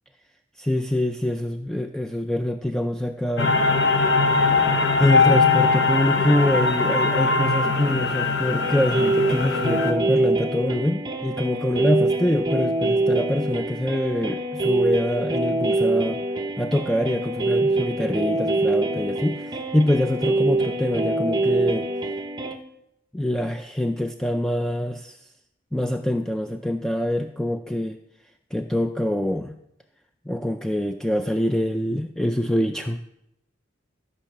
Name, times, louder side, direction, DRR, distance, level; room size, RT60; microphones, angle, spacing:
voice 1, 0.6-3.5 5.0-16.2 16.6-21.9 23.1-25.2 25.7-28.0 28.5-29.6 30.3-33.0, left 1 dB, 5° left, 5 dB, 0.3 m, -25 dB
sound 1, 3.4-9.9, left 4 dB, 60° left, 1.0 m, -21 dB
sound 2, 8.6-22.6, right 2 dB, 20° right, 0.8 m, -24 dB
13.5 x 5.5 x 6.7 m, 0.83 s
head